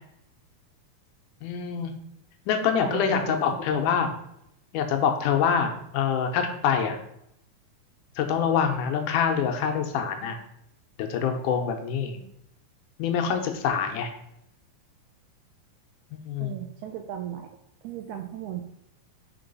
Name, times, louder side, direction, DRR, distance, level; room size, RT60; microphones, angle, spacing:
voice 1, 1.4-1.9 2.5-4.1 4.7-7.0 8.2-10.4 11.0-12.2 13.0-14.1 16.1-16.5, left 7 dB, 80° left, 5 dB, 2.1 m, -25 dB
voice 2, 2.7-3.2 3.7-3.9 16.4-17.5 17.8-18.6, right 10 dB, 80° right, 5 dB, 1.7 m, -35 dB
5.2 x 4.7 x 5.3 m, 0.77 s
omnidirectional pair, 3.8 m